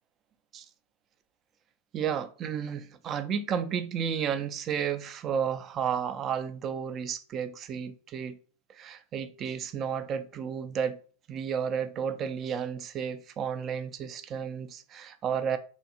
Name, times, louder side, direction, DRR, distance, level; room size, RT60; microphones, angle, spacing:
voice 1, 1.9-8.4 8.8-11.0 11.3-15.6, right 7 dB, 35° right, 0.3 m, -32 dB
2.5 x 2.5 x 2.8 m
hypercardioid pair, 90°, 0 cm